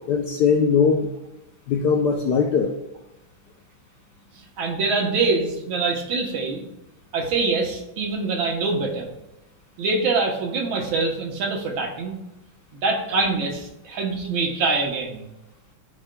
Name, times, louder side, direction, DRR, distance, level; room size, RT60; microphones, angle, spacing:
voice 1, 0.1-1.1 1.7-2.7, left 6 dB, 75° left, 3 dB, 0.9 m, -20 dB
voice 2, 4.6-6.6 7.1-9.1 9.8-12.1 12.7-15.2, right 3 dB, 70° right, 1 dB, 1.7 m, -24 dB
12.5 x 4.3 x 2.2 m, 0.93 s
omnidirectional pair, 2.3 m